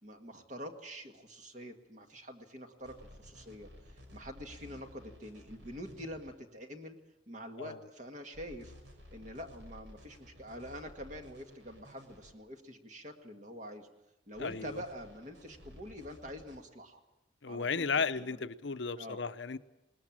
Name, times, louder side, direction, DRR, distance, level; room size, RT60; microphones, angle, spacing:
voice 1, 0.0-3.7 4.1-7.0 7.3-8.7 9.1-13.9 14.3-17.0 17.5-17.9 18.2-18.5 19.0-19.2, equal, 40° right, 5 dB, 1.8 m, -46 dB
sound 1, 2.8-6.3 8.3-12.3 14.3-16.6, left 1 dB, 85° right, 5.5 m, -54 dB
voice 2, 14.4-14.8 17.4-19.6, left 5 dB, 85° left, 13 dB, 0.8 m, -34 dB
21.0 x 19.5 x 7.5 m, 0.92 s
head